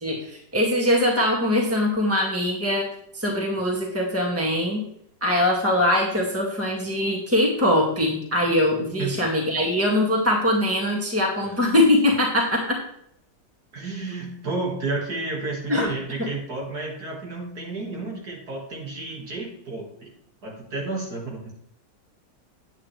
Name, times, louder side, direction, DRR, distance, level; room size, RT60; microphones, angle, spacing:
voice 1, 0.0-2.9 3.1-4.8 5.2-12.8 15.7-15.9, left 1 dB, 10° right, -2 dB, 1.9 m, -22 dB
voice 2, 11.4-11.8 13.7-20.1 20.4-21.7, right 3 dB, 60° right, -1 dB, 2.4 m, -32 dB
9.3 x 8.8 x 3.2 m, 0.70 s
omnidirectional pair, 1.9 m